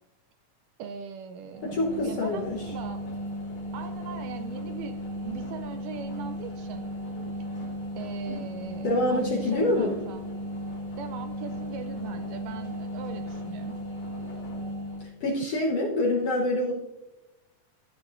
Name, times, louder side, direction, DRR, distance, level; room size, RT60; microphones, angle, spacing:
voice 1, 0.8-1.7 2.0-3.0 3.7-6.9 8.0-10.3 11.0-13.8, right 7 dB, 80° right, 8 dB, 1.9 m, -40 dB
sound 1, 1.5-15.1, equal, 30° left, 3.2 m, -35 dB
voice 2, 1.6-2.7 8.3-8.4 8.8-10.0 15.0-16.7, left 1 dB, 65° left, -3 dB, 1.6 m, -26 dB
14.5 x 8.5 x 2.5 m, 1.1 s
omnidirectional pair, 4.0 m